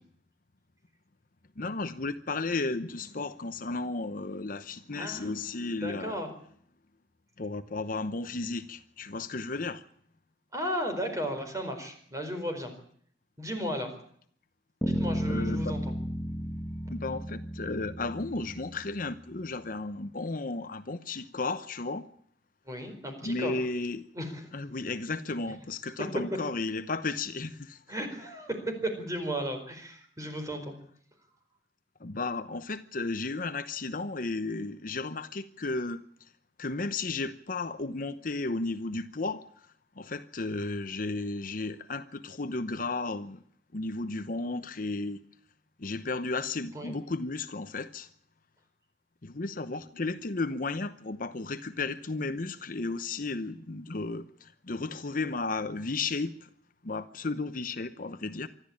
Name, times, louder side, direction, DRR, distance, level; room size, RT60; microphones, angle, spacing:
voice 1, 1.6-6.2 7.4-9.8 15.3-15.8 16.9-22.1 23.2-24.0 24.5-27.8 32.0-36.0 36.6-39.4 40.0-43.4 43.7-45.2 45.8-48.1 49.2-56.5 56.8-58.5, left 3 dB, 50° left, 0.9 m, -34 dB
voice 2, 5.0-5.3 5.8-6.3 10.5-12.7 13.4-13.9 14.8-15.8 22.7-23.5 24.1-24.4 26.3-26.4 27.9-30.7 46.7-46.9 49.9-50.0, equal, 20° right, 4.6 m, -34 dB
sound 1, 14.8-19.2, equal, 5° left, 2.1 m, -33 dB
25.5 x 13.0 x 8.6 m
head